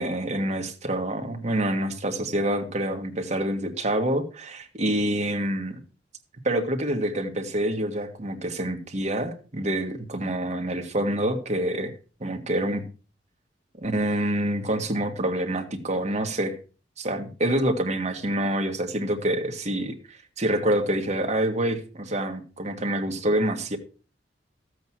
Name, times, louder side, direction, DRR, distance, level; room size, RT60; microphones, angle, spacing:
voice 1, 0.0-5.7 6.4-11.9 12.2-12.8 13.8-16.6 17.0-23.8, right 1 dB, 40° right, 4 dB, 1.8 m, -27 dB
13.5 x 8.1 x 4.7 m, 0.35 s
head